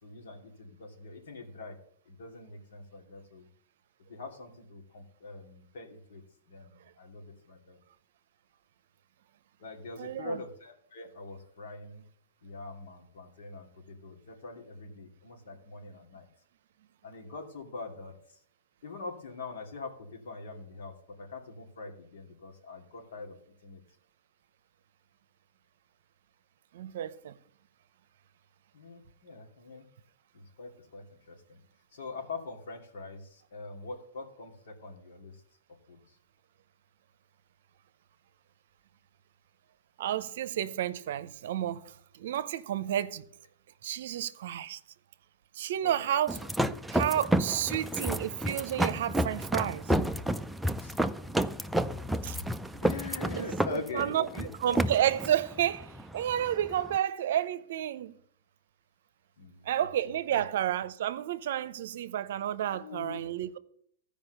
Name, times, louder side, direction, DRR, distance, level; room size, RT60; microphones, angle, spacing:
voice 1, 0.0-1.8 2.1-3.5 4.1-6.2 6.5-7.8 9.6-12.0 12.4-16.3 17.0-18.1 18.8-23.4 23.6-23.8 28.7-29.8 30.3-31.6 31.9-35.3 35.9-36.0 45.8-45.9 50.8-50.9 51.6-51.7 52.8-54.8 59.4-59.9 60.3-60.4 62.7-63.2, left 3 dB, 75° left, 2.6 m, -43 dB
voice 2, 10.0-10.4 26.7-27.4 40.0-43.2 43.8-44.8 45.5-46.4 46.9-49.9 52.2-52.4 53.4-53.5 53.7-58.1 59.6-63.6, right 11 dB, 65° right, 0.7 m, -31 dB
sound 1, 46.3-57.0, right 1 dB, 5° right, 0.4 m, -31 dB
14.0 x 5.2 x 6.6 m
hypercardioid pair, 135°, 0 cm